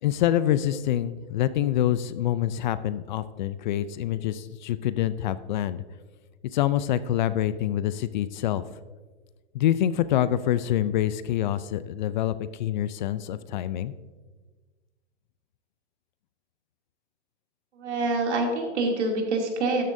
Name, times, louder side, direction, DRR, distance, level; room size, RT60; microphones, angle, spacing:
voice 1, 0.0-5.8 6.5-8.8 9.5-13.9, left 12 dB, 45° left, 15 dB, 0.4 m, -26 dB
voice 2, 17.8-19.8, right 2 dB, 75° right, 0 dB, 2.8 m, -26 dB
13.0 x 10.5 x 2.7 m, 1.3 s
hypercardioid pair, 140°, 34 cm